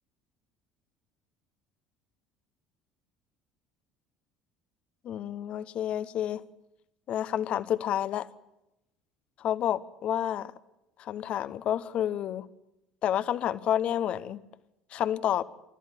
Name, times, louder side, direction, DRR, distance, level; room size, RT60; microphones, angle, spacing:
voice 1, 5.0-6.4 7.1-8.3 9.4-10.5 11.0-12.5 13.0-14.4 14.9-15.4, left 10 dB, 45° left, 1.1 m, -29 dB
28.5 x 14.0 x 9.9 m
figure-of-eight pair, 60°, 3 cm